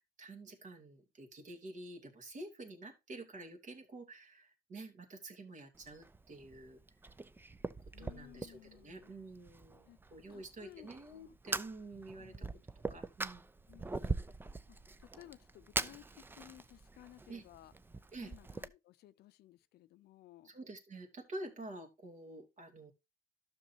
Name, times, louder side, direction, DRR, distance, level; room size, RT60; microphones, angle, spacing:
voice 1, 0.0-6.8 8.0-12.5 12.9-13.4 17.3-17.4 18.1-18.3 20.4-22.9, right 2 dB, 45° right, 2.5 m, -49 dB
Fire, 5.7-18.7, right 3 dB, 10° right, 0.5 m, -43 dB
voice 2, 7.9-9.1 9.9-11.3 12.2-12.6 13.7-14.2 14.7-16.1 16.3-17.7 18.2-20.5, left 15 dB, 75° left, 0.6 m, -58 dB
12.5 x 6.4 x 2.8 m
cardioid pair, 110°, 17 cm